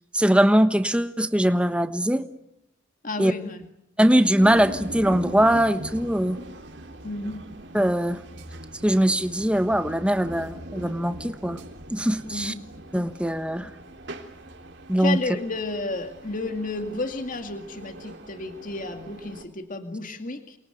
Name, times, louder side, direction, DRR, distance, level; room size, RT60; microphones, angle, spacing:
voice 1, 0.1-2.2 3.2-3.3 4.0-6.4 7.7-8.2 8.8-11.6 11.9-12.5 12.9-13.7 14.9-15.2, right 1 dB, 5° right, 10 dB, 1.2 m, -21 dB
voice 2, 3.0-3.7 7.0-7.5 12.2-12.6 15.0-20.6, left 2 dB, 40° left, 7 dB, 2.1 m, -32 dB
sound 1, 4.4-19.4, right 1 dB, 60° right, 3.5 m, -41 dB
29.0 x 22.5 x 9.3 m, 0.80 s
head